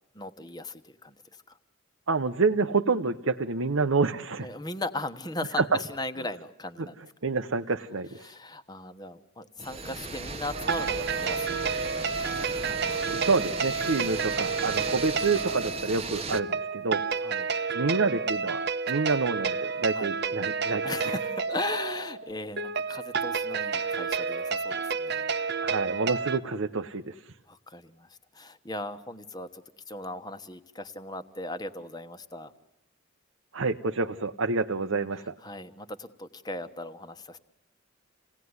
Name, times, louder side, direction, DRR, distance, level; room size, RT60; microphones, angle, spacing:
voice 1, 0.1-1.1 1.5-1.6 4.4-7.0 8.2-12.1 17.2-17.5 19.9-20.1 20.8-25.3 27.5-32.5 35.4-37.4, left 2 dB, 20° left, 9 dB, 1.2 m, -38 dB
voice 2, 2.1-4.5 5.6-5.8 6.8-6.9 7.2-8.3 13.1-17.0 17.7-18.6 18.9-21.2 25.6-27.3 33.5-35.3, right 4 dB, 75° right, 6 dB, 0.9 m, -28 dB
sound 1, 9.6-16.4, right 3 dB, 30° right, 1.1 m, -36 dB
sound 2, 10.5-26.4, right 5 dB, 50° right, 1.0 m, -30 dB
28.5 x 18.0 x 9.6 m, 0.86 s
head